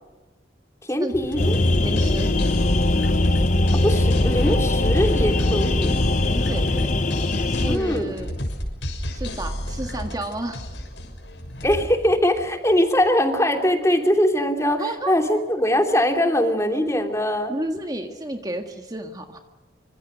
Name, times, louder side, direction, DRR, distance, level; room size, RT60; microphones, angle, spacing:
voice 1, 0.8-1.6 3.7-5.9 7.7-8.1 11.6-17.5, equal, 15° left, 4 dB, 3.1 m, -22 dB
sound 1, 1.1-12.8, equal, 85° left, 6.4 m, -31 dB
sound 2, 1.4-7.8, left 2 dB, 40° left, 1.1 m, -21 dB
voice 2, 1.8-2.3 6.3-6.9 7.5-8.3 9.1-10.6 14.8-15.1 17.5-19.4, right 1 dB, 20° right, 4 dB, 1.8 m, -31 dB
27.5 x 25.5 x 6.3 m, 1.1 s
head